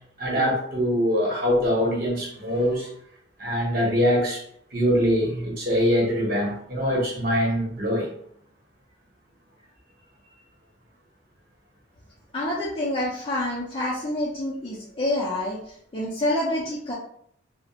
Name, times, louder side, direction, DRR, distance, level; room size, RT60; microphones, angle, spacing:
voice 1, 0.2-2.9 3.4-4.4 4.7-8.1, equal, 50° right, -4 dB, 0.9 m, -23 dB
voice 2, 12.3-16.9, left 1 dB, 30° left, -8 dB, 0.4 m, -27 dB
2.4 x 2.0 x 2.9 m, 0.65 s
head